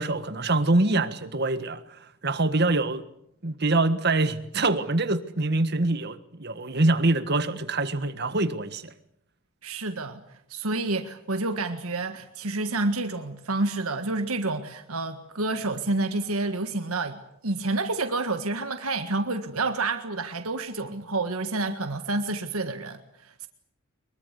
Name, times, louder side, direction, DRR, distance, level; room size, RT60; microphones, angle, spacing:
voice 1, 0.0-3.0 3.4-8.9, right 2 dB, 50° right, 1.6 m, -25 dB
voice 2, 9.6-10.2 10.5-23.5, right 2 dB, 85° right, 1.6 m, -29 dB
23.5 x 22.5 x 8.3 m
head